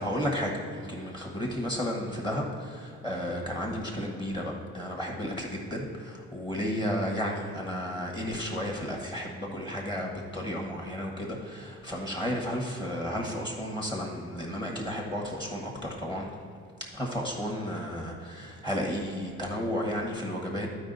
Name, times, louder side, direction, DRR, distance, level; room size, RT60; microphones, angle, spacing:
voice 1, 0.0-16.3 16.9-20.7, equal, 15° left, -1 dB, 1.3 m, -33 dB
12.0 x 4.8 x 4.0 m, 2.3 s
cardioid pair, 90°, 30 cm